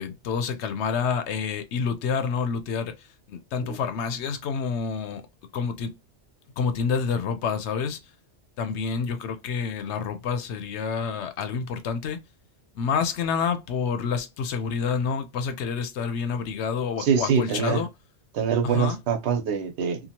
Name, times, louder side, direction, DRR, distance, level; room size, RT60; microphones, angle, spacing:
voice 1, 0.0-2.9 3.3-5.2 5.5-5.9 6.6-8.0 8.6-12.2 12.8-17.9 18.6-19.0, left 6 dB, 75° left, 0.8 m, -28 dB
voice 2, 17.0-17.8 18.3-20.0, right 7 dB, 70° right, 1.0 m, -24 dB
2.8 x 2.2 x 2.8 m
omnidirectional pair, 1.2 m